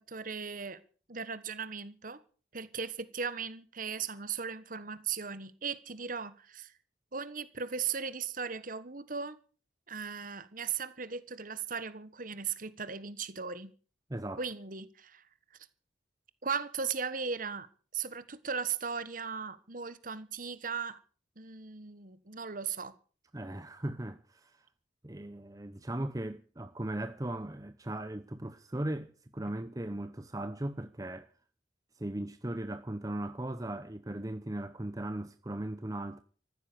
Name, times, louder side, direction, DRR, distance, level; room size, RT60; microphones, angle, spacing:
voice 1, 0.1-0.8 1.1-2.2 2.5-6.7 7.1-9.4 9.9-13.7 14.4-15.2 16.4-17.7 17.9-21.0 21.4-22.9, right 6 dB, 45° right, 1.5 m, -37 dB
voice 2, 14.1-14.4 23.3-24.7 25.0-31.3 32.0-36.2, right 1 dB, 20° right, 0.8 m, -38 dB
15.0 x 13.0 x 6.9 m
head